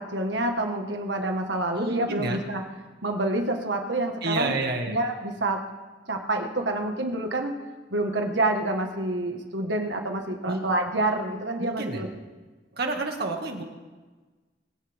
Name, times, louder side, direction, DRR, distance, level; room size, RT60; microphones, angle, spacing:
voice 1, 0.0-2.6 3.0-4.5 4.9-5.6 6.1-7.6 7.9-12.1, right 2 dB, 80° right, 3 dB, 1.8 m, -27 dB
voice 2, 1.7-2.4 4.2-5.0 10.4-10.7 11.6-12.0 12.7-13.6, right 2 dB, 60° right, 2 dB, 2.3 m, -29 dB
22.0 x 17.0 x 3.7 m, 1.3 s
head